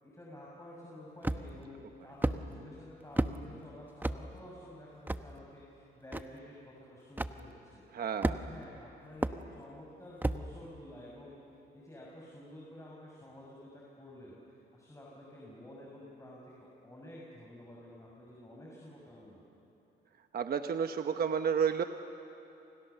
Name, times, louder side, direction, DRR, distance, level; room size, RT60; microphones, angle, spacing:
voice 1, 0.0-11.4 11.7-14.4 14.7-19.4, left 1 dB, 15° left, -4 dB, 6.1 m, -51 dB
sound 1, 1.2-1.6 2.2-2.4 3.2-3.4 4.0-4.2 5.1-5.2 6.1-6.2 7.2-7.3 8.2-8.6 9.2-9.4 10.2-10.4, right 1 dB, 10° right, 0.9 m, -31 dB
voice 2, 7.9-8.3 20.3-21.8, right 7 dB, 50° right, 7 dB, 1.0 m, -31 dB
29.5 x 26.5 x 6.9 m, 2.9 s
cardioid pair, 90°, 20 cm